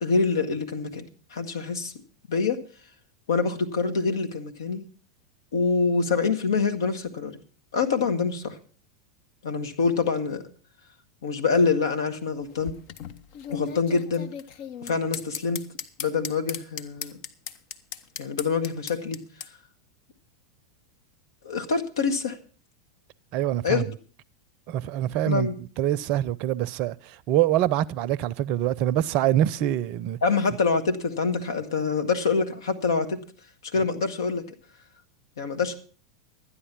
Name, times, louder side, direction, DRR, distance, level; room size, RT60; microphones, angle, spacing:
voice 1, 0.0-1.0 1.3-1.9 2.3-2.6 3.3-4.8 5.5-7.4 7.7-8.6 9.4-10.4 11.2-12.7 13.5-14.3 14.8-15.6 16.0-17.2 18.2-19.2 21.4-22.4 23.6-23.8 25.2-25.6 30.2-33.2 33.7-34.4 35.4-35.7, left 4 dB, 75° left, 1.5 m, -25 dB
sound 1, 12.4-19.5, left 8 dB, 55° left, 0.9 m, -37 dB
voice 2, 23.3-23.8 24.7-25.5 25.8-26.9 27.3-30.2, right 12 dB, 50° right, 0.6 m, -24 dB
12.5 x 9.8 x 5.9 m
hypercardioid pair, 90°, 2 cm